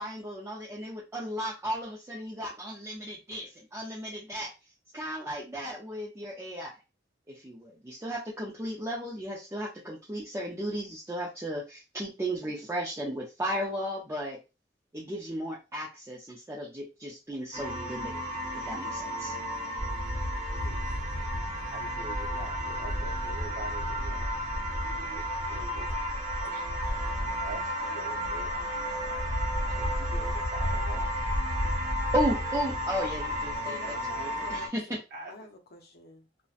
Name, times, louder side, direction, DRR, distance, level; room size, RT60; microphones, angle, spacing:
voice 1, 0.0-4.5 4.9-6.7 7.3-14.4 14.9-18.2 18.7-19.3 32.1-35.0, equal, 15° right, 0.5 m, -35 dB
sound 1, 17.5-34.7, equal, 40° right, 1.0 m, -34 dB
sound 2, 19.8-33.6, equal, 35° left, 1.0 m, -35 dB
voice 2, 21.4-24.4 24.7-25.9 26.4-26.7 27.4-28.9 29.7-31.1 35.1-35.3, right 3 dB, 55° right, 0.7 m, -45 dB
voice 3, 33.7-35.0 35.3-36.5, left 2 dB, 60° left, 0.6 m, -47 dB
2.7 x 2.1 x 2.4 m
head